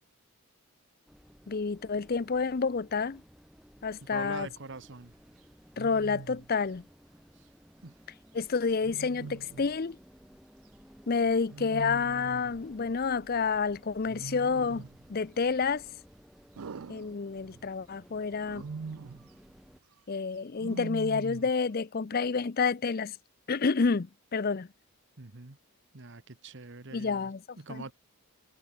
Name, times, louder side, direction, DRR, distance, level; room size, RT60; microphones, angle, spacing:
sound 1, 1.1-19.8, equal, ahead, 2.6 m, -57 dB
voice 1, 1.5-3.2 3.8-4.5 5.8-6.8 8.3-10.0 11.1-15.8 16.9-18.7 20.1-23.2 23.5-24.7 26.9-27.4, left 5 dB, 40° left, 0.5 m, -29 dB
voice 2, 4.1-5.2 7.3-7.5 7.8-7.9 25.2-25.6 25.9-27.9, right 3 dB, 55° right, 1.2 m, -44 dB
Wild animals, 4.2-4.5 5.8-6.5 8.8-9.7 11.5-12.6 14.1-15.0 16.6-17.7 18.4-19.3 20.6-21.6, right 4 dB, 75° right, 0.5 m, -42 dB
head